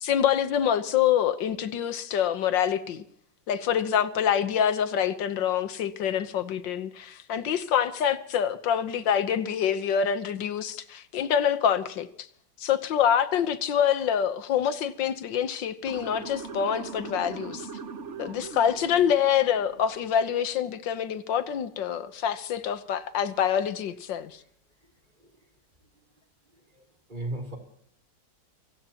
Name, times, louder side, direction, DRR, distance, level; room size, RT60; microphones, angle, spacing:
voice 1, 0.0-3.0 3.5-12.1 12.6-17.7 18.2-24.4, left 9 dB, 75° left, 1.7 m, -26 dB
Motor vehicle (road) / Siren, 15.9-20.0, right 5 dB, 45° right, 1.2 m, -40 dB
voice 2, 27.1-27.6, right 2 dB, 25° right, 3.9 m, -34 dB
27.5 x 17.5 x 3.0 m
omnidirectional pair, 2.1 m